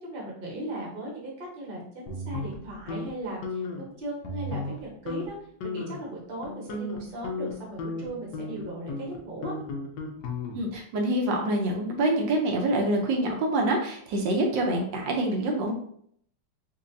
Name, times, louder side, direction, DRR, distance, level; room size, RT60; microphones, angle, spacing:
voice 1, 0.0-5.3 5.6-9.5, right 1 dB, 35° right, -3 dB, 1.0 m, -37 dB
sound 1, 2.1-3.1 3.4-3.8 4.2-4.8 5.1-5.3 5.6-6.0 6.4-10.8, left 2 dB, 70° left, 1.2 m, -35 dB
voice 2, 10.5-15.7, right 1 dB, 80° right, 1 dB, 1.4 m, -26 dB
4.0 x 2.7 x 2.6 m, 0.65 s
omnidirectional pair, 2.0 m